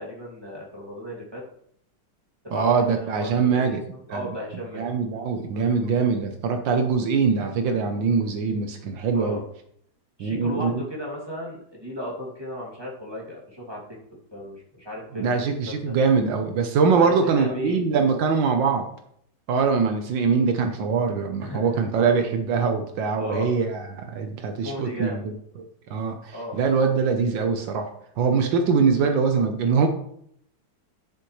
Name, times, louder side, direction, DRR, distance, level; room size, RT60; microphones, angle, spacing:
voice 1, 0.0-1.4 2.4-4.9 9.1-9.4 10.2-14.0 14.3-16.0 17.0-17.8 21.4-21.8 23.2-23.5 24.6-25.3 26.3-26.6, left 1 dB, 15° right, -4 dB, 2.5 m, -35 dB
voice 2, 2.5-3.8 4.1-4.2 4.7-9.4 10.2-10.8 15.1-18.9 19.5-25.2 25.9-27.9 28.2-29.9, right 5 dB, 80° right, 5 dB, 1.6 m, -23 dB
11.0 x 7.0 x 3.2 m, 0.69 s
omnidirectional pair, 2.0 m